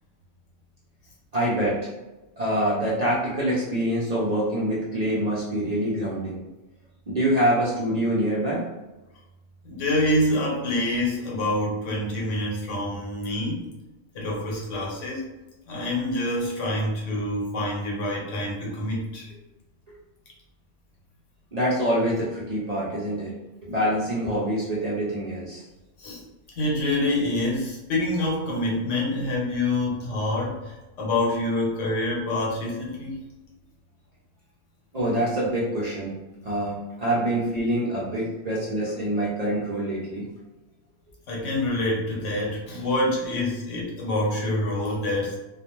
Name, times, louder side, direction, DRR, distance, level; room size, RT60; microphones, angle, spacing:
voice 1, 1.3-1.9 2.4-6.4 7.1-8.6 21.5-23.3 23.6-25.6 34.9-36.2 36.4-40.3, right 1 dB, 50° right, -7 dB, 0.5 m, -25 dB
voice 2, 9.6-13.6 14.1-15.2 15.7-19.3 26.0-26.2 26.6-33.2 41.3-45.4, left 1 dB, 80° left, -3 dB, 1.2 m, -26 dB
2.3 x 2.1 x 3.0 m, 1.1 s
omnidirectional pair, 1.2 m